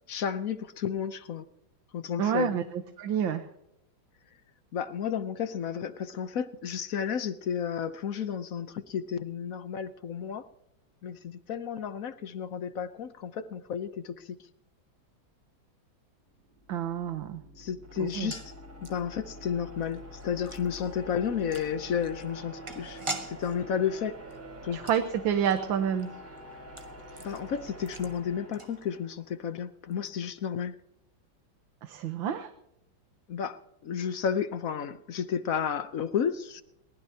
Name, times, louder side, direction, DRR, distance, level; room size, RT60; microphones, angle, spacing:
voice 1, 0.1-1.5 1.9-2.5 4.7-10.5 11.0-14.4 17.6-18.4 18.8-24.2 24.6-24.8 27.2-30.8 33.3-36.6, left 7 dB, 55° left, 12 dB, 1.0 m, -32 dB
voice 2, 2.2-2.6 3.0-3.5 16.7-17.4 18.0-18.3 24.7-26.1 31.8-32.5, right 8 dB, 80° right, 8 dB, 1.8 m, -28 dB
sound 1, 16.2-29.4, equal, 50° right, 4.3 m, -46 dB
sound 2, 18.0-29.3 29.5-29.6 29.9-30.1, right 2 dB, 20° right, 1.0 m, -45 dB
22.0 x 19.0 x 2.8 m, 0.81 s
omnidirectional pair, 2.1 m